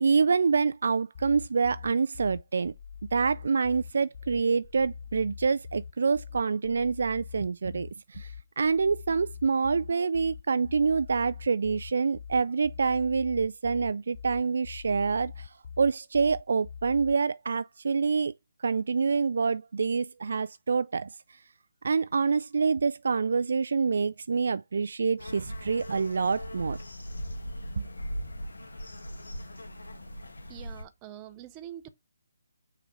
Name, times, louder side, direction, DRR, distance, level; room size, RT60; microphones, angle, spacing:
voice 1, 0.0-2.7 3.1-15.5 15.8-18.3 18.6-21.1 21.8-26.8, right 5 dB, 60° right, 0.3 m, -26 dB
sound 1, 1.1-17.1, left 7 dB, 40° left, 0.5 m, -44 dB
sound 2, 25.2-30.8, equal, 75° left, 1.5 m, -39 dB
voice 2, 30.5-31.9, right 11 dB, 20° right, 0.7 m, -44 dB
6.0 x 3.8 x 4.8 m
figure-of-eight pair, 145°, 0 cm